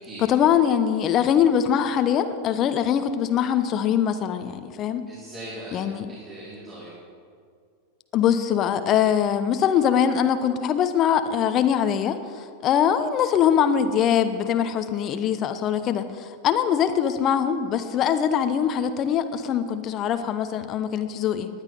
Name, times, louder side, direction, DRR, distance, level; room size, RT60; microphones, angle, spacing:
voice 1, 0.3-5.0 5.7-6.1 8.1-21.5, left 8 dB, 30° left, 10 dB, 0.9 m, -22 dB
voice 2, 5.1-6.9, right 1 dB, 25° right, -8 dB, 4.4 m, -40 dB
18.5 x 11.0 x 5.5 m, 2.2 s
figure-of-eight pair, 90°, 0 cm